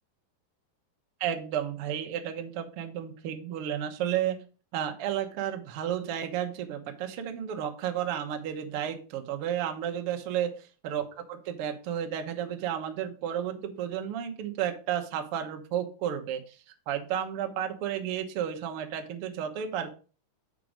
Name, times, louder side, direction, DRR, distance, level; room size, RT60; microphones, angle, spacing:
voice 1, 1.2-4.4 4.7-19.9, right 10 dB, 90° right, 5 dB, 1.2 m, -32 dB
7.5 x 5.2 x 5.0 m, 0.35 s
omnidirectional pair, 4.1 m